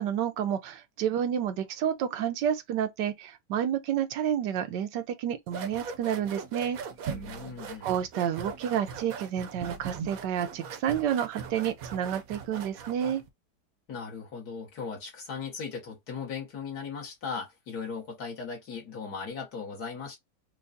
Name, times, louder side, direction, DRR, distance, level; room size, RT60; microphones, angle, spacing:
voice 1, 0.0-6.8 7.8-13.2, right 9 dB, 85° right, 1.3 m, -30 dB
sound 1, 5.5-13.3, right 6 dB, 65° right, 1.0 m, -40 dB
voice 2, 7.1-7.9 13.9-20.2, left 5 dB, 65° left, 1.9 m, -38 dB
4.6 x 2.3 x 2.6 m
omnidirectional pair, 1.8 m